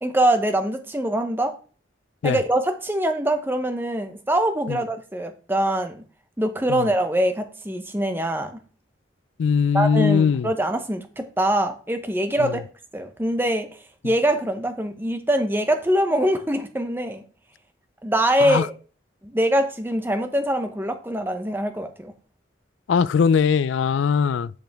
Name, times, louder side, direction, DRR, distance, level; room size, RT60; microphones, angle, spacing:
voice 1, 0.0-1.5 2.2-6.0 6.4-8.6 9.7-12.6 12.9-13.7 14.0-17.2 18.0-18.7 19.2-22.1, right 1 dB, 10° right, 0.8 m, -23 dB
voice 2, 9.4-10.5 12.4-12.6 18.4-18.6 22.9-24.5, left 6 dB, 75° left, 0.3 m, -20 dB
10.5 x 5.0 x 3.4 m
head